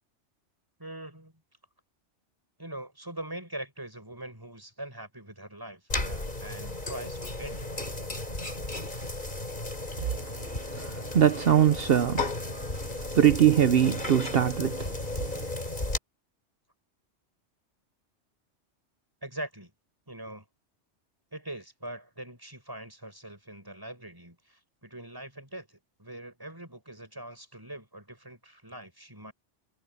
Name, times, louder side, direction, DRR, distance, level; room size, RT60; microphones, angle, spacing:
voice 1, 0.8-1.3 2.6-7.8 19.2-19.7 20.1-20.5 21.3-29.3, right 1 dB, 20° right, 6.4 m, -42 dB
sound 1, 5.9-16.0, left 2 dB, 40° left, 3.9 m, -34 dB
voice 2, 10.8-12.2 13.1-14.8, right 10 dB, 60° right, 0.9 m, -22 dB
omnidirectional pair, 1.2 m